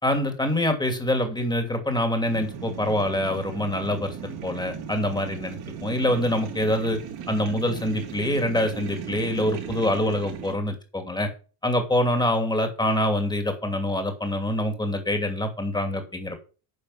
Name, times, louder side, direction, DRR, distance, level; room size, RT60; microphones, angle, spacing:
voice 1, 0.0-7.0 7.3-11.3 11.6-16.4, left 1 dB, 10° left, 5 dB, 2.6 m, -25 dB
sound 1, 2.2-10.6, right 8 dB, 55° right, 3.4 m, -37 dB
9.6 x 5.1 x 5.6 m, 0.35 s
supercardioid pair, 95°, 44 cm